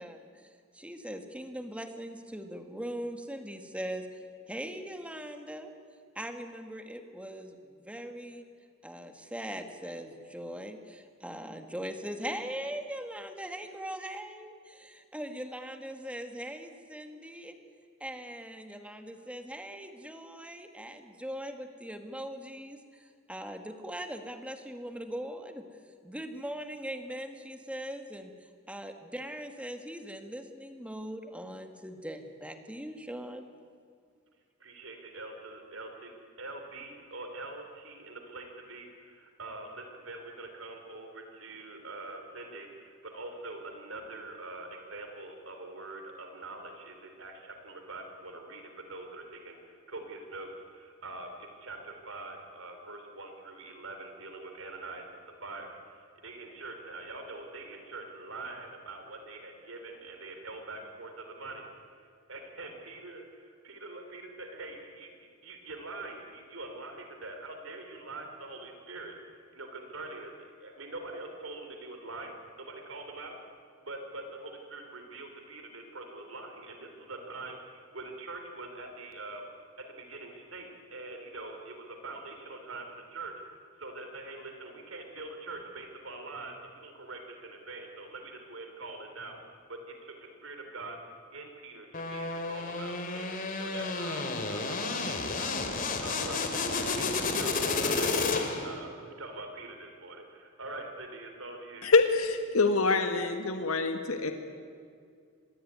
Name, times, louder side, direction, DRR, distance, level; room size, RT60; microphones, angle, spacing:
voice 1, 0.0-4.1 4.5-5.7 6.1-8.5 8.8-17.5 18.0-25.7 26.0-28.3 28.7-33.4, equal, 5° right, 6 dB, 1.8 m, -40 dB
voice 2, 34.6-61.7 61.9-70.3 70.6-73.4 73.8-79.5 79.8-91.0 91.3-95.7 96.0-101.9, right 2 dB, 65° right, 5 dB, 3.5 m, -44 dB
sound 1, 91.9-98.8, left 3 dB, 40° left, 2.8 m, -31 dB
voice 3, 101.8-104.3, left 4 dB, 85° left, 6 dB, 1.6 m, -25 dB
25.5 x 20.5 x 9.5 m, 2.2 s
head